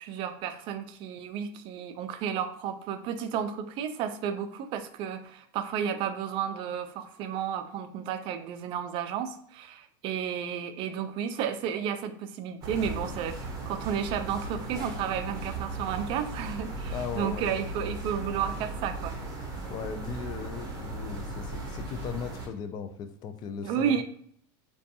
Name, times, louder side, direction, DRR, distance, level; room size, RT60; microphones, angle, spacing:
voice 1, 0.0-19.1 23.6-24.0, right 8 dB, 50° right, 9 dB, 0.4 m, -32 dB
sound 1, 12.6-22.5, right 2 dB, 35° right, 0.8 m, -37 dB
voice 2, 16.9-17.5 19.7-24.0, left 7 dB, 40° left, 9 dB, 0.3 m, -38 dB
2.5 x 2.2 x 2.7 m, 0.63 s
supercardioid pair, 110°, 11 cm